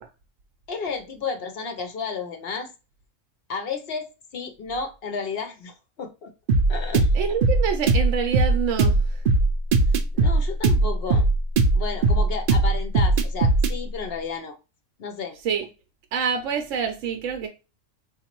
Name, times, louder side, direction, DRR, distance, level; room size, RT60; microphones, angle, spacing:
voice 1, 0.7-2.7 3.5-6.3 6.7-7.1 10.1-11.3 11.7-14.6 15.0-15.4, left 5 dB, 60° left, 0.8 m, -32 dB
sound 1, 6.5-13.8, right 3 dB, 60° right, 0.6 m, -19 dB
voice 2, 7.1-9.2 15.4-15.6 16.1-17.5, right 7 dB, 75° right, 1.0 m, -26 dB
3.9 x 2.5 x 2.8 m
omnidirectional pair, 1.3 m